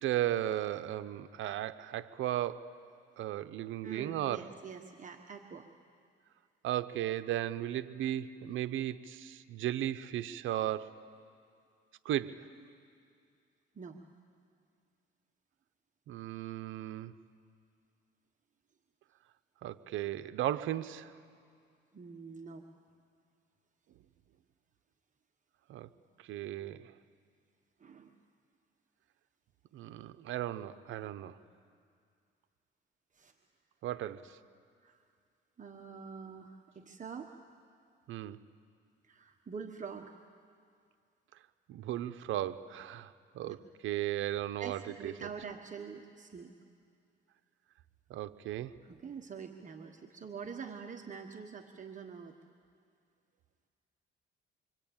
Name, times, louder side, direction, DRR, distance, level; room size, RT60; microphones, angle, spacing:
voice 1, 0.0-2.7 3.2-4.5 6.6-10.9 12.0-12.5 16.1-17.1 19.6-21.1 25.7-25.9 26.3-26.9 29.7-31.4 33.8-34.4 38.1-38.4 41.7-45.1 48.1-48.8, right 12 dB, 80° right, 12 dB, 0.8 m, -36 dB
voice 2, 3.8-5.7 13.7-14.0 21.9-22.7 26.4-26.5 27.8-28.1 33.1-33.3 34.8-35.0 35.6-37.3 39.1-40.2 43.4-43.5 44.6-46.5 48.8-52.4, right 6 dB, 40° right, 3 dB, 1.3 m, -45 dB
25.5 x 25.0 x 8.8 m, 2.3 s
cardioid pair, 90°, 20 cm